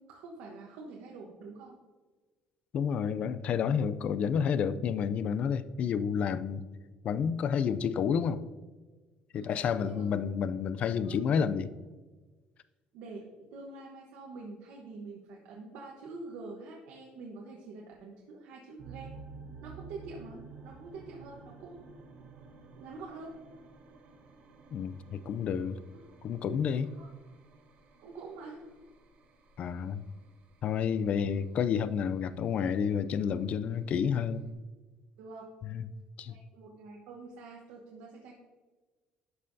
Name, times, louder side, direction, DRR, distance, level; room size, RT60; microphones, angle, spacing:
voice 1, 0.0-1.8 9.3-10.1 11.0-11.2 12.9-19.2 19.6-20.4 20.6-21.8 22.8-23.3 25.9-26.0 26.8-27.1 28.0-28.6 35.2-35.5 36.2-38.3, right 3 dB, 85° right, -1 dB, 1.1 m, -46 dB
voice 2, 2.7-6.6 7.0-8.4 9.3-11.7 24.7-25.8 26.2-26.9 29.6-30.0 30.6-34.5 35.6-35.9 36.2-36.4, left 7 dB, 45° left, 14 dB, 0.4 m, -30 dB
sound 1, 18.8-34.5, right 4 dB, 50° right, 1.1 m, -53 dB
11.5 x 5.5 x 2.7 m, 1.3 s
cardioid pair, 145°, 3 cm